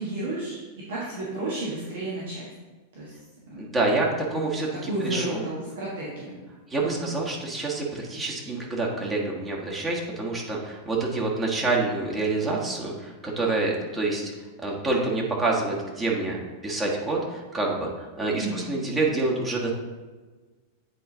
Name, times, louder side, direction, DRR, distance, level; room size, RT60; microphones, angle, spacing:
voice 1, 0.0-2.4 2.9-3.2 3.5-3.6 4.4-4.5 4.8-6.4 6.8-7.1 18.4-18.7, right 2 dB, 60° right, -6 dB, 1.4 m, -32 dB
voice 2, 3.6-5.5 6.7-14.3 14.6-16.4 16.6-19.7, right 3 dB, 15° right, -3 dB, 1.4 m, -27 dB
8.4 x 4.5 x 3.9 m, 1.3 s
figure-of-eight pair, 90°, 0 cm